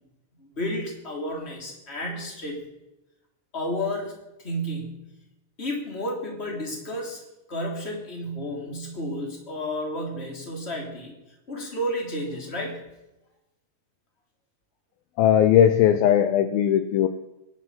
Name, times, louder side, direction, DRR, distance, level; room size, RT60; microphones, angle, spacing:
voice 1, 0.4-2.6 3.5-4.1 4.4-5.0 5.6-7.2 7.5-11.1 11.5-12.8, equal, 15° left, 1 dB, 2.9 m, -31 dB
voice 2, 15.2-17.1, left 10 dB, 80° left, 10 dB, 2.2 m, -18 dB
22.0 x 11.5 x 5.7 m, 0.95 s
omnidirectional pair, 5.1 m